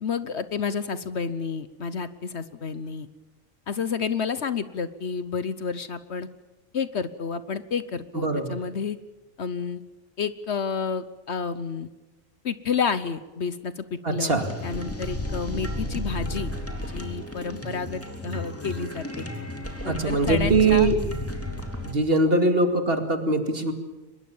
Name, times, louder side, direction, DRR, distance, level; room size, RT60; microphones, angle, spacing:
voice 1, 0.0-3.1 3.7-6.3 6.7-9.0 9.4-9.8 10.2-11.9 12.4-14.3 14.6-16.5 16.9-19.3 19.8-20.9, left 6 dB, 60° left, 14 dB, 1.2 m, -30 dB
voice 2, 8.1-8.5 14.0-14.5 19.9-21.0 21.9-23.7, right 3 dB, 45° right, 7 dB, 2.6 m, -22 dB
sound 1, 14.4-21.9, left 1 dB, 10° left, 2.9 m, -33 dB
24.0 x 21.5 x 7.2 m, 1.1 s
omnidirectional pair, 1.4 m